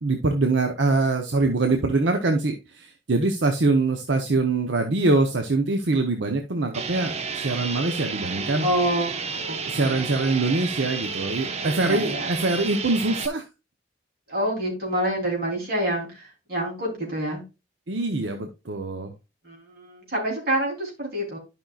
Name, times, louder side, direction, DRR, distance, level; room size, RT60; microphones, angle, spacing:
voice 1, 0.0-8.7 9.7-13.4 17.9-19.1, right 3 dB, 75° right, 5 dB, 0.9 m, -24 dB
sound 1, 6.7-13.3, right 5 dB, 35° right, 0.6 m, -31 dB
voice 2, 8.6-10.1 11.9-12.3 14.3-17.4 19.4-21.4, right 1 dB, 55° right, -1 dB, 3.5 m, -27 dB
11.5 x 5.5 x 2.4 m, 0.27 s
head